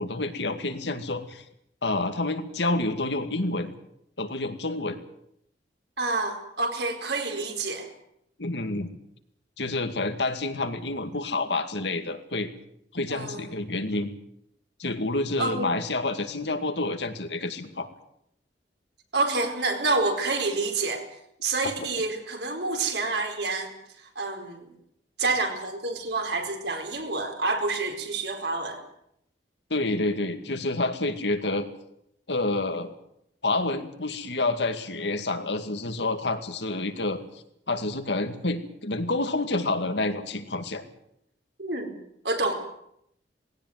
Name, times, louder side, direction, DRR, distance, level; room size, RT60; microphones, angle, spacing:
voice 1, 0.0-1.4 1.8-3.7 4.2-5.0 8.4-8.9 9.6-12.5 12.9-14.1 14.8-17.9 29.7-31.7 32.3-32.9 33.4-37.2 37.7-40.8, left 2 dB, 75° left, 7 dB, 2.3 m, -28 dB
voice 2, 6.0-7.9 13.1-13.5 15.4-15.7 19.1-21.1 21.4-24.7 25.2-28.8 41.6-41.9 42.2-42.5, right 3 dB, 65° right, 4 dB, 4.5 m, -28 dB
19.5 x 17.0 x 9.6 m, 0.75 s
head